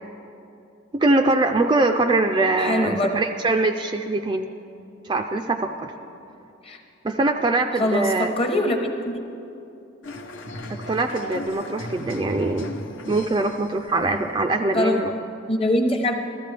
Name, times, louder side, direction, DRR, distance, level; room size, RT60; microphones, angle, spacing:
voice 1, 0.9-4.5 5.0-5.9 7.0-8.3 10.7-12.7 13.1-15.1, right 2 dB, 25° right, 5 dB, 0.3 m, -22 dB
voice 2, 2.6-3.1 6.6-6.8 7.8-9.2 14.7-15.0 15.5-16.1, left 1 dB, 30° left, 3 dB, 0.9 m, -23 dB
sound 1, 10.0-14.6, left 1 dB, 75° left, 0.9 m, -36 dB
15.0 x 14.0 x 3.3 m, 2.7 s
head